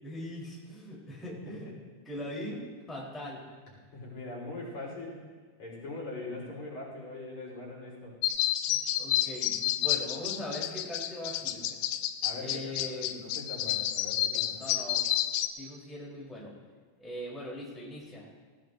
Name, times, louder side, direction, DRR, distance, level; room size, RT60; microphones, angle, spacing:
voice 1, 0.0-1.7 2.0-3.7 8.7-11.6 12.4-13.3 14.6-15.0 15.6-16.5 17.0-18.3, left 1 dB, ahead, -5 dB, 3.3 m, -40 dB
voice 2, 3.9-5.2 5.6-8.2 11.5-11.7 12.2-14.6, left 2 dB, 50° left, -5 dB, 5.0 m, -42 dB
sound 1, 8.2-15.5, left 12 dB, 85° left, 2.4 m, -30 dB
19.0 x 18.5 x 2.7 m, 1.5 s
omnidirectional pair, 4.1 m